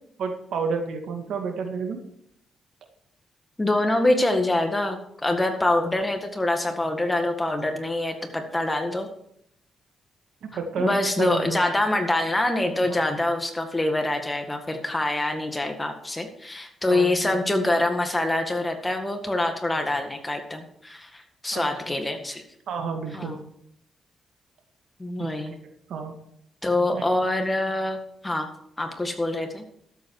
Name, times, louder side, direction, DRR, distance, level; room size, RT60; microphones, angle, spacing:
voice 1, 0.2-2.0 10.4-10.9 11.2-11.6 12.8-13.0 16.9-17.4 21.5-22.0 22.7-23.4 25.2-25.3 25.9-26.2 26.9-27.1, right 5 dB, 75° right, 4 dB, 2.0 m, -31 dB
voice 2, 3.6-9.1 10.8-22.4 23.1-23.4 25.0-25.5 26.6-28.0 28.2-28.5 28.8-29.6, left 1 dB, 15° left, 5 dB, 1.8 m, -25 dB
12.5 x 8.1 x 4.8 m, 0.70 s
cardioid pair, 105°, 0 cm